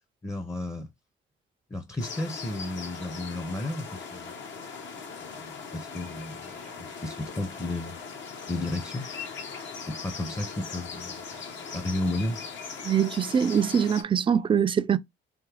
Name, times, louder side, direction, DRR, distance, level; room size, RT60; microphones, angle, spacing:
voice 1, 0.2-0.9 1.7-4.3 5.2-8.0 8.5-9.1 9.9-11.2 11.7-12.4, left 1 dB, 15° left, 0.6 m, -33 dB
sound 1, 2.0-14.0, left 5 dB, 70° left, 1.1 m, -40 dB
voice 2, 12.8-15.0, right 8 dB, 25° right, 0.4 m, -23 dB
3.5 x 3.2 x 3.2 m
cardioid pair, 90°, 20 cm